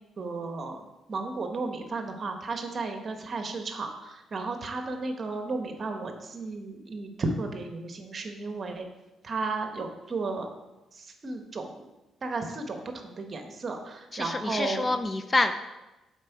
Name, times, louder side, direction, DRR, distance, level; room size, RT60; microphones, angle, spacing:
voice 1, 0.2-0.8 1.1-8.9 9.2-10.5 10.9-11.9 12.2-14.9, right 3 dB, 40° right, 5 dB, 1.1 m, -34 dB
voice 2, 14.1-15.5, left 2 dB, 25° left, 8 dB, 0.5 m, -27 dB
7.4 x 4.7 x 4.6 m, 1.0 s
cardioid pair, 90°, 0 cm